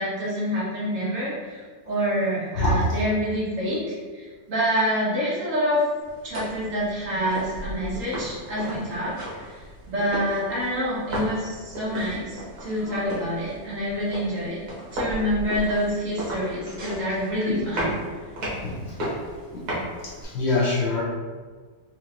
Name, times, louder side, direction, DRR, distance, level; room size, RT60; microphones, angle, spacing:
voice 1, 0.0-5.8 6.2-9.6 9.9-14.6 14.9-17.9, equal, 55° right, -8 dB, 1.5 m, -27 dB
voice 2, 2.5-3.0 8.8-8.9 11.9-12.0 12.6-13.1 17.5-17.6 17.9-18.0 18.4-19.2 19.5-19.7 20.0-21.0, left 2 dB, 55° left, -5 dB, 0.8 m, -27 dB
sound 1, 6.0-20.2, equal, 80° right, 1.6 m, -34 dB
4.3 x 2.4 x 2.9 m, 1.5 s
omnidirectional pair, 1.6 m